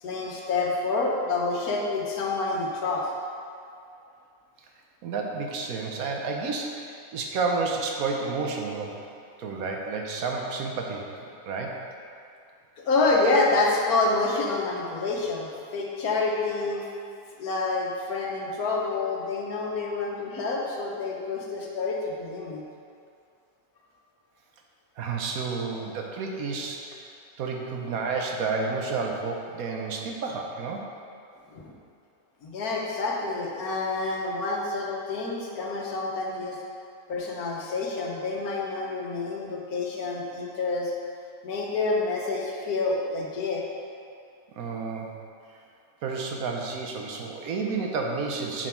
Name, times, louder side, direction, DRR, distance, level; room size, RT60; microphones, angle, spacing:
voice 1, 0.0-3.1 12.8-16.9 17.4-22.6 31.5-31.7 32.4-36.6 37.1-40.9 41.4-43.6, left 3 dB, 75° left, -2 dB, 1.4 m, -28 dB
voice 2, 5.0-9.0 9.4-11.8 25.0-27.0 27.4-30.8 44.6-45.1 46.0-48.7, right 4 dB, 70° right, 1 dB, 1.2 m, -31 dB
7.0 x 5.1 x 4.5 m, 2.4 s
omnidirectional pair, 1.6 m